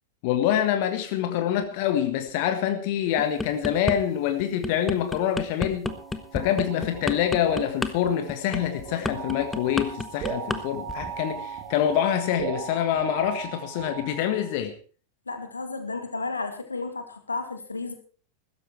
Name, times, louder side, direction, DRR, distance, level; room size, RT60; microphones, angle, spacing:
voice 1, 0.2-5.9 6.3-14.7, left 10 dB, 45° left, 8 dB, 1.6 m, -26 dB
sound 1, 3.2-4.0 4.4-10.6 10.9-11.2, left 3 dB, 10° left, 1.2 m, -30 dB
sound 2, 5.9-14.6, right 7 dB, 35° right, 3.0 m, -38 dB
voice 2, 15.3-17.9, left 3 dB, 80° left, 8 dB, 2.1 m, -32 dB
15.5 x 13.5 x 4.5 m, 0.40 s
figure-of-eight pair, 90°, 0 cm